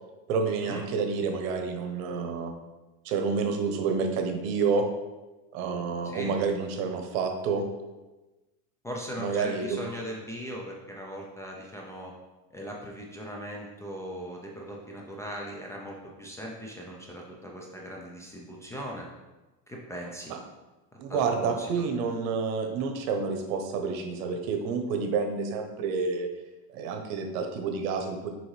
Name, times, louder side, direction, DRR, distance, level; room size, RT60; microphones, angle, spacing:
voice 1, 0.3-2.5 3.0-4.9 5.5-7.7 9.2-9.8 20.3-20.4 21.0-26.3 26.7-28.3, right 5 dB, 85° right, 5 dB, 1.0 m, -29 dB
voice 2, 8.8-12.1 12.5-19.1 19.7-20.3 21.1-21.7, equal, 10° left, -2 dB, 0.3 m, -39 dB
6.3 x 4.8 x 3.2 m, 1.1 s
cardioid pair, 150°, 41 cm